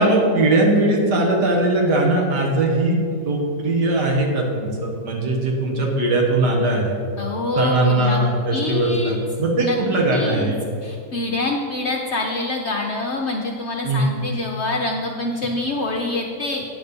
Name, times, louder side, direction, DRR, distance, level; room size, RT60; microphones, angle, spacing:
voice 1, 0.0-7.0 7.6-10.6 13.8-14.0, right 2 dB, 80° right, -1 dB, 1.9 m, -20 dB
voice 2, 7.2-8.2 8.5-9.2 9.6-9.8 10.1-10.5 10.8-16.6, left 2 dB, 60° left, 1 dB, 0.7 m, -25 dB
9.3 x 4.1 x 6.8 m, 2.2 s
omnidirectional pair, 1.8 m